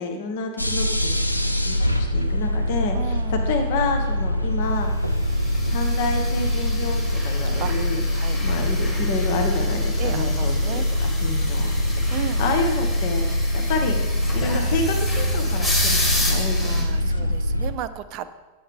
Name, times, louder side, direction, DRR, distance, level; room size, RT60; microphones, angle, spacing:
voice 1, 0.0-5.0 5.6-8.0 8.4-13.3 13.5-14.0 14.3-17.3, left 3 dB, 50° left, 4 dB, 0.9 m, -29 dB
sound 1, 0.6-17.7, left 1 dB, 90° left, 0.5 m, -23 dB
voice 2, 2.9-3.5 7.6-7.8 8.1-8.4 10.0-10.9 12.1-12.4 16.3-18.3, right 12 dB, 40° right, 12 dB, 0.4 m, -34 dB
sound 2, 5.2-16.8, left 1 dB, 15° left, 2.0 m, -32 dB
8.6 x 7.7 x 3.4 m, 1.2 s
figure-of-eight pair, 90°, 0 cm